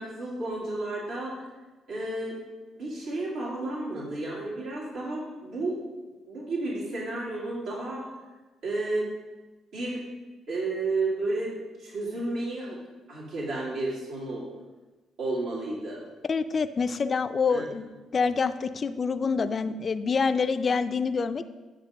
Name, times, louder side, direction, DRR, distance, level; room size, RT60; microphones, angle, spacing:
voice 1, 0.0-1.4 1.9-2.4 2.7-5.8 6.3-8.1 8.6-9.1 9.7-10.0 10.5-12.8 13.1-14.4 15.2-16.0 17.5-17.6, right 2 dB, 85° right, -6 dB, 1.9 m, -32 dB
voice 2, 16.3-21.4, left 5 dB, 40° left, 11 dB, 0.3 m, -26 dB
8.5 x 2.9 x 6.3 m, 1.2 s
cardioid pair, 90°, 0 cm